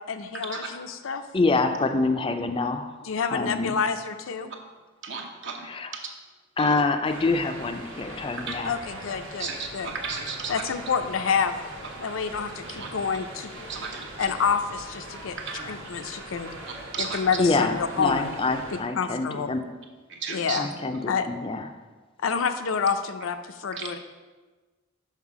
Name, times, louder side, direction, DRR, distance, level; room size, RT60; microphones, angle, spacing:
voice 1, 0.1-1.2 3.1-4.5 8.6-9.9 10.5-11.5 12.0-13.5 14.2-15.4 15.7-16.5 17.0-18.3 19.0-19.5 20.3-20.7 21.1-21.3 22.2-24.0, left 6 dB, 85° left, 9 dB, 0.5 m, -28 dB
voice 2, 1.3-2.9 3.3-3.8 5.6-5.9 6.6-8.8 17.4-19.6 20.6-21.7, left 3 dB, 25° left, 8 dB, 0.4 m, -26 dB
voice 3, 5.0-5.7 5.9-6.0 6.6-6.8 8.5-8.6 9.4-10.6 12.7-12.9 13.7-14.4 15.4-15.7 16.7-17.2 20.1-20.6 23.7-23.9, right 5 dB, 60° right, 2 dB, 0.9 m, -34 dB
sound 1, 7.0-18.8, right 1 dB, 80° right, 1.2 m, -41 dB
5.6 x 5.4 x 4.8 m, 1.3 s
head